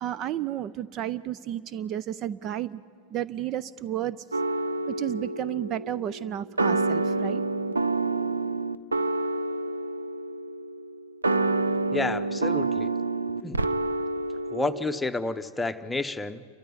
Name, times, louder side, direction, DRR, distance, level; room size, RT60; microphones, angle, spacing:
voice 1, 0.0-2.8 3.1-4.4 4.9-7.4, right 11 dB, 40° right, 18 dB, 0.5 m, -32 dB
sound 1, 4.3-15.0, right 3 dB, 90° right, 0.6 m, -28 dB
voice 2, 11.9-12.9 13.4-13.6 14.5-16.5, left 2 dB, 10° left, 9 dB, 0.9 m, -30 dB
29.0 x 14.0 x 9.5 m, 2.4 s
hypercardioid pair, 95°, 0 cm